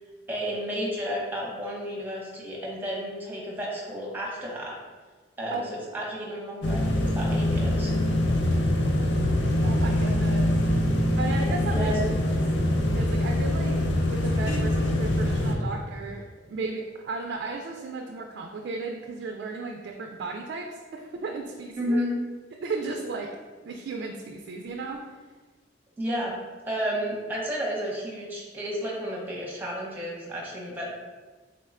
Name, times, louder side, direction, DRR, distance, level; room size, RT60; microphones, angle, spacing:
voice 1, 0.3-4.7 5.4-7.9 11.7-12.1 21.8-22.1 26.0-26.3 26.7-30.9, equal, 10° right, -4 dB, 0.7 m, -32 dB
sound 1, 6.6-15.6, left 1 dB, 80° left, 0.5 m, -24 dB
voice 2, 9.6-10.5 11.2-11.9 12.9-13.8 14.1-22.0 22.6-23.3 23.6-25.0, right 3 dB, 70° right, 1 dB, 0.3 m, -34 dB
3.7 x 2.2 x 3.5 m, 1.4 s
head